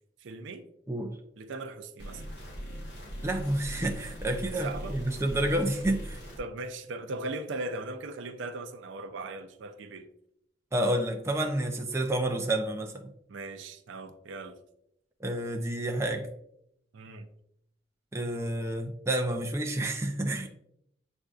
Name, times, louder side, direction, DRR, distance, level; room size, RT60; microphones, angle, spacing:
voice 1, 0.2-0.6 1.4-2.2 4.6-5.0 6.4-10.1 13.3-14.6 16.9-17.3, right 2 dB, 80° right, 9 dB, 0.4 m, -38 dB
voice 2, 0.9-1.2 3.2-6.2 10.7-13.1 15.2-16.3 18.1-20.5, right 1 dB, 15° right, 3 dB, 0.4 m, -29 dB
sound 1, 2.0-6.4, equal, 60° left, 1.1 m, -40 dB
7.4 x 2.6 x 2.3 m, 0.76 s
head